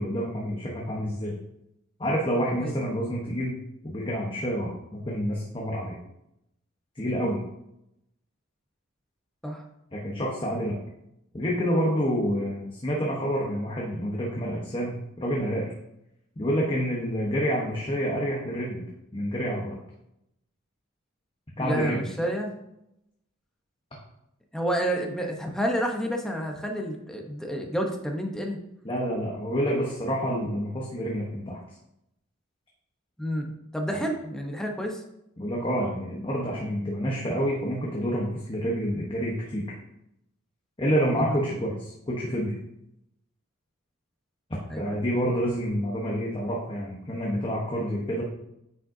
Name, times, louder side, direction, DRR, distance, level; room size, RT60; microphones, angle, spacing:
voice 1, 0.0-1.3 2.0-3.6 3.8-6.0 7.0-7.4 9.9-10.7 11.3-15.7 16.4-18.8 19.1-19.8 21.6-22.1 28.8-31.6 33.9-34.0 35.4-39.6 40.8-42.6 44.8-48.2, equal, 25° left, -3 dB, 1.1 m, -28 dB
voice 2, 21.6-22.5 24.5-28.6 33.2-35.0 41.2-41.4 44.7-45.0, equal, 5° left, 1 dB, 0.9 m, -30 dB
9.6 x 5.2 x 2.8 m, 0.82 s
head